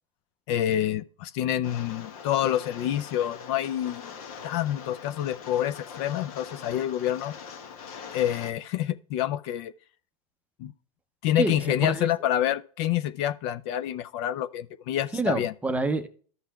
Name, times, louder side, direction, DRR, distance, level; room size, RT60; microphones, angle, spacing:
voice 1, 0.5-4.1 4.4-7.3 8.1-9.7 10.6-10.7 11.2-15.5, left 11 dB, 45° left, 0.4 m, -27 dB
Rain, 1.6-8.5, left 6 dB, 70° left, 1.2 m, -43 dB
voice 2, 11.4-12.1 15.1-16.1, right 3 dB, 5° right, 0.6 m, -28 dB
13.5 x 5.5 x 2.3 m
hypercardioid pair, 125°, 19 cm